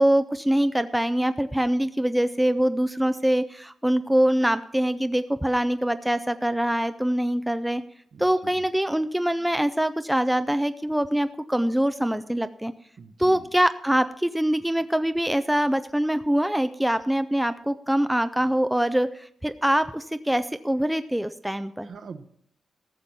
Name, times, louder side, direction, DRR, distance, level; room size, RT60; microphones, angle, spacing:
voice 1, 0.0-7.8 8.2-12.7 13.2-21.9, right 1 dB, 5° right, 11 dB, 0.3 m, -24 dB
voice 2, 13.0-13.5 18.4-18.6 21.8-22.2, right 5 dB, 55° right, 8 dB, 0.8 m, -43 dB
14.0 x 6.9 x 5.9 m, 0.66 s
wide cardioid pair, 165°, 0 cm